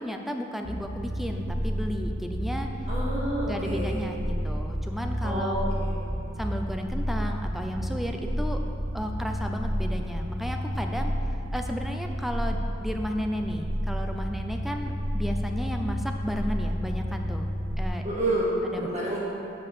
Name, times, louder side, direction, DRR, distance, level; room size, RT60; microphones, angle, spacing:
voice 1, 0.0-2.7 3.4-5.7 6.4-8.6 8.9-11.1 11.5-17.5 17.8-18.0 18.7-18.9, equal, ahead, 3 dB, 0.5 m, -33 dB
sound 1, 0.6-17.8, equal, 65° right, 1.2 m, -31 dB
voice 2, 2.9-4.1 5.2-5.9 18.0-19.2, right 1 dB, 35° right, -6 dB, 1.5 m, -29 dB
8.5 x 5.3 x 6.8 m, 2.9 s
head